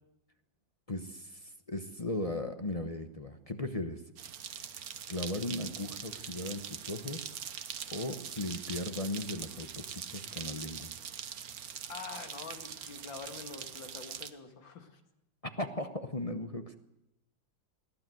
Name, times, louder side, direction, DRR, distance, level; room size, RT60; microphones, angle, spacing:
voice 1, 0.9-4.0 5.1-7.3 7.9-10.9 15.6-16.8, left 2 dB, 25° left, 7 dB, 0.8 m, -37 dB
sound 1, 4.2-14.3, right 8 dB, 60° right, 1.3 m, -43 dB
voice 2, 11.9-15.0, left 5 dB, 85° left, 5 dB, 2.7 m, -45 dB
22.0 x 15.5 x 7.7 m, 0.86 s
omnidirectional pair, 2.0 m